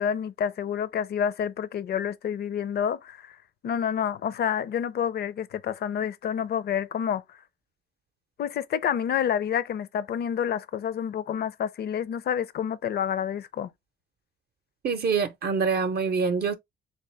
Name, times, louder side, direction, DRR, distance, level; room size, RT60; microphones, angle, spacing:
voice 1, 0.0-3.3 3.6-7.2 8.4-13.7, left 8 dB, 55° left, 0.5 m, -28 dB
voice 2, 14.8-16.5, right 5 dB, 55° right, 0.6 m, -25 dB
3.3 x 2.9 x 3.2 m
cardioid pair, 90°, 20 cm